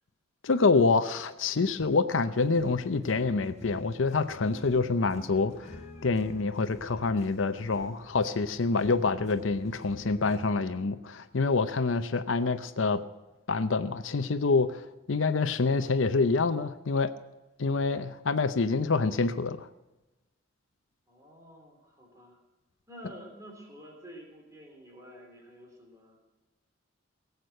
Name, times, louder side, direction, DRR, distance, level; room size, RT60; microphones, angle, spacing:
voice 1, 0.4-5.8 6.0-13.0 13.5-17.1 17.6-19.7, left 4 dB, 75° left, 11 dB, 0.7 m, -26 dB
sound 1, 2.3-10.4, left 1 dB, 35° left, 3.7 m, -48 dB
voice 2, 21.1-22.4 22.9-26.2, equal, 15° right, 0 dB, 3.4 m, -49 dB
18.0 x 8.1 x 6.6 m, 1.0 s
head